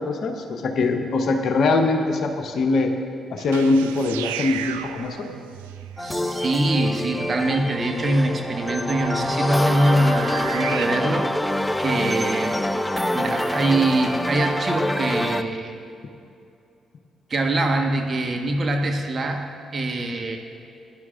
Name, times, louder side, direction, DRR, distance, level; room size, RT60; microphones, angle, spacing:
voice 1, 0.0-2.9 3.3-5.3, left 3 dB, 60° left, 5 dB, 0.9 m, -22 dB
sound 1, 3.4-10.8, right 10 dB, 80° right, 0.3 m, -36 dB
sound 2, 6.0-15.4, left 1 dB, 10° left, 0.5 m, -26 dB
voice 2, 6.0-12.6 13.1-15.7 17.3-19.4 19.7-20.4, right 1 dB, 45° right, 3 dB, 1.3 m, -23 dB
17.0 x 10.5 x 2.5 m, 2.6 s
hypercardioid pair, 40°, 0 cm